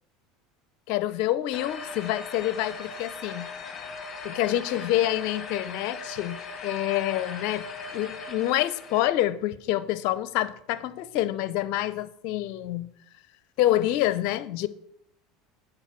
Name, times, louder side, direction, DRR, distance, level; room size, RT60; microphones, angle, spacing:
voice 1, 0.9-3.5 4.2-6.4 6.6-12.9 13.6-14.7, left 14 dB, 65° left, 0.6 m, -27 dB
sound 1, 1.5-9.0, left 3 dB, 35° left, 1.8 m, -39 dB
10.0 x 5.3 x 6.0 m
hypercardioid pair, 80°, 0 cm